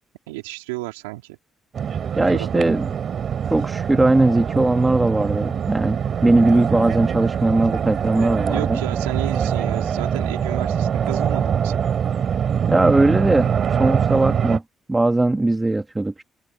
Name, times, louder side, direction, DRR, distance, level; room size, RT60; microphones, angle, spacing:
voice 1, 0.3-1.4 2.3-2.6 8.5-11.8, right 20 dB, 85° right, 2.8 m, -32 dB
sound 1, 1.7-14.6, right 8 dB, 55° right, 4.1 m, -23 dB
voice 2, 2.2-2.9 3.5-8.8 12.7-14.6 14.9-16.2, right 2 dB, 20° right, 2.0 m, -19 dB
hypercardioid pair, 45°, 0 cm